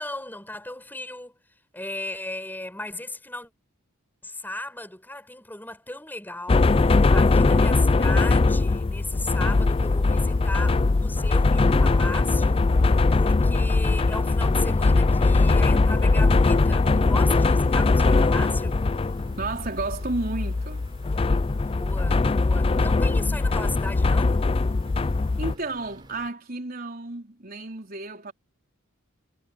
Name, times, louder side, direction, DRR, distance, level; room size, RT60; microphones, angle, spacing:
voice 1, 0.0-1.4 1.7-3.5 4.2-18.8 21.6-24.4, left 2 dB, 10° left, 6.3 m, -36 dB
sound 1, 6.5-25.5, left 3 dB, 25° left, 0.4 m, -21 dB
sound 2, 9.5-26.3, right 1 dB, 20° right, 4.4 m, -51 dB
voice 2, 19.4-20.9 25.4-28.3, right 2 dB, 45° right, 4.4 m, -32 dB
head